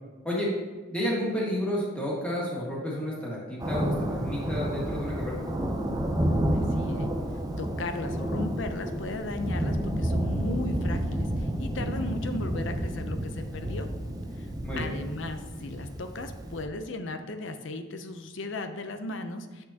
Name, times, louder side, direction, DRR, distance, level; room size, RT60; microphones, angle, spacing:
voice 1, 0.9-5.4 14.6-14.9, equal, 5° left, -5 dB, 1.7 m, -31 dB
Thunder, 3.6-16.6, right 1 dB, 20° right, 0.6 m, -30 dB
voice 2, 6.5-7.1 7.6-13.9 14.4-14.5 14.8-19.6, left 2 dB, 65° left, 8 dB, 0.6 m, -36 dB
8.3 x 6.3 x 2.9 m, 1.3 s
head